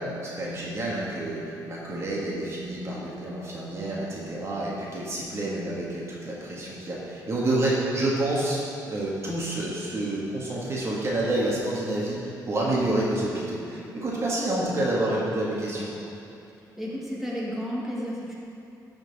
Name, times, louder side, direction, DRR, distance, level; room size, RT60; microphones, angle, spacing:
voice 1, 0.0-8.6 8.9-15.9, right 1 dB, 40° right, -5 dB, 1.6 m, -28 dB
voice 2, 16.8-18.3, equal, 5° right, -6 dB, 1.8 m, -32 dB
12.5 x 4.5 x 4.1 m, 2.8 s
cardioid pair, 100°, 7 cm